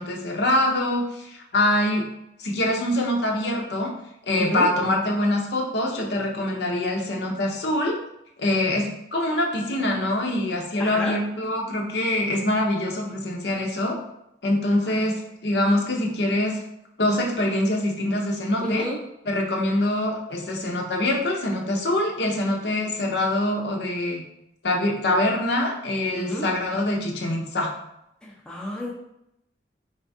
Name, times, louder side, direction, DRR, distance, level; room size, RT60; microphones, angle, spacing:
voice 1, 0.0-2.1 2.4-3.9 4.3-8.0 8.4-14.0 14.4-16.6 17.0-18.8 19.3-24.2 24.6-27.7, left 1 dB, 65° left, 1 dB, 0.7 m, -24 dB
voice 2, 4.4-4.7 10.8-11.2 14.8-15.2 18.6-19.0 26.1-26.5 28.2-28.9, equal, 5° left, -4 dB, 0.6 m, -30 dB
4.3 x 3.4 x 2.6 m, 0.80 s
head